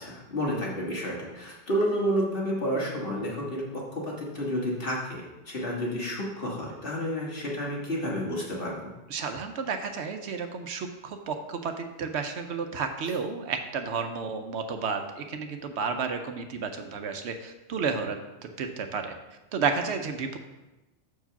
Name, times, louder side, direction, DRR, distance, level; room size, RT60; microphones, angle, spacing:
voice 1, 0.0-8.9, equal, 50° left, -3 dB, 1.8 m, -30 dB
voice 2, 9.1-19.1 19.5-20.4, right 5 dB, 70° right, 6 dB, 0.9 m, -32 dB
6.6 x 4.7 x 5.6 m, 1.1 s
omnidirectional pair, 1.2 m